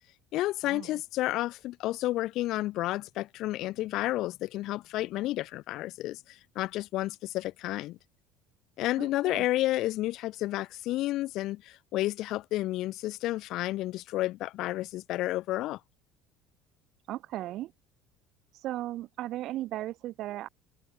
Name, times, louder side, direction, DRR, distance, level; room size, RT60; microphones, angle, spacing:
voice 1, 0.3-8.0 8.8-15.8, left 16 dB, 65° left, 2.9 m, -31 dB
voice 2, 9.0-9.4 17.1-17.7 18.6-20.5, right 14 dB, 60° right, 3.1 m, -36 dB
supercardioid pair, 110°, 0 cm